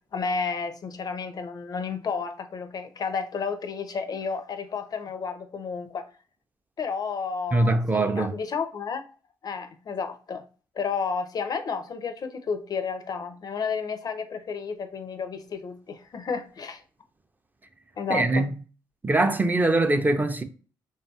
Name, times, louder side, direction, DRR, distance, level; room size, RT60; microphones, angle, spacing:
voice 1, 0.1-6.1 6.8-9.0 9.4-10.4 10.8-16.8 18.0-18.5, left 5 dB, 45° left, 0.4 m, -31 dB
voice 2, 7.5-8.4 18.1-18.5 19.0-20.4, right 2 dB, 20° right, 0.4 m, -22 dB
2.6 x 2.3 x 2.6 m
supercardioid pair, 55°, 9 cm